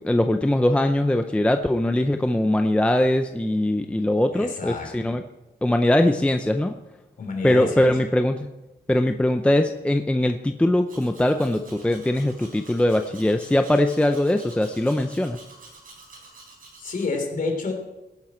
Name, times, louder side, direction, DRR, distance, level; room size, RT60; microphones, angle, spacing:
voice 1, 0.0-5.2 5.6-6.7 7.4-8.5 8.9-15.4, left 1 dB, 5° left, 7 dB, 0.5 m, -21 dB
voice 2, 4.3-5.2 7.2-8.1 16.8-17.7, left 3 dB, 45° left, 2 dB, 3.4 m, -29 dB
Domestic sounds home sounds, 10.9-17.1, right 3 dB, 50° right, 4.2 m, -48 dB
18.0 x 10.5 x 4.4 m, 1.0 s
wide cardioid pair, 170°, 19 cm